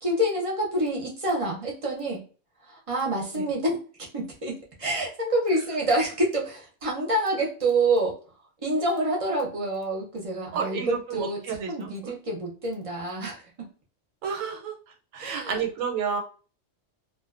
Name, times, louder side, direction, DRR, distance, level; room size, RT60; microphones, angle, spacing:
voice 1, 0.0-2.2 2.7-8.2 8.6-13.5 15.2-15.6, right 1 dB, 40° right, -1 dB, 0.5 m, -27 dB
voice 2, 10.5-11.9 14.2-14.7 15.1-16.2, right 6 dB, 90° right, 3 dB, 1.0 m, -30 dB
2.5 x 2.1 x 2.4 m, 0.38 s
omnidirectional pair, 1.3 m